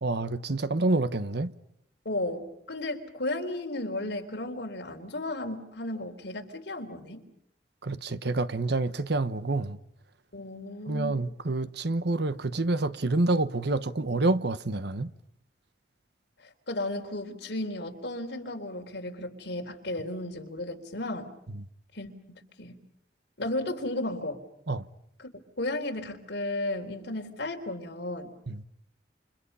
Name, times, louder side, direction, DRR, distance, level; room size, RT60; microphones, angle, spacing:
voice 1, 0.0-1.5 7.8-9.8 10.9-15.1 21.5-21.6 24.7-24.9 28.5-28.6, right 2 dB, 65° right, 1.1 m, -28 dB
voice 2, 2.1-7.2 10.3-11.2 16.4-21.3 21.9-22.8 23.4-24.4 25.2-25.3 25.6-28.3, left 1 dB, 65° left, 3.8 m, -34 dB
29.5 x 28.5 x 5.6 m
head